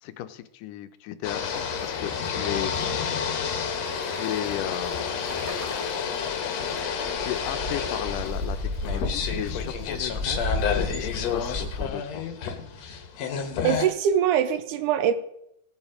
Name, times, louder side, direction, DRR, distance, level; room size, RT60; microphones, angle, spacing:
voice 1, 0.0-2.7 4.1-5.0 7.2-12.3, left 12 dB, 90° left, 11 dB, 2.3 m, -35 dB
sound 1, 1.2-13.9, left 6 dB, 60° left, 2.2 m, -30 dB
sound 2, 1.4-11.9, left 2 dB, 15° right, 2.2 m, -35 dB
voice 2, 13.6-15.1, right 9 dB, 75° right, 11 dB, 2.2 m, -22 dB
17.5 x 7.3 x 5.0 m, 0.77 s
omnidirectional pair, 3.7 m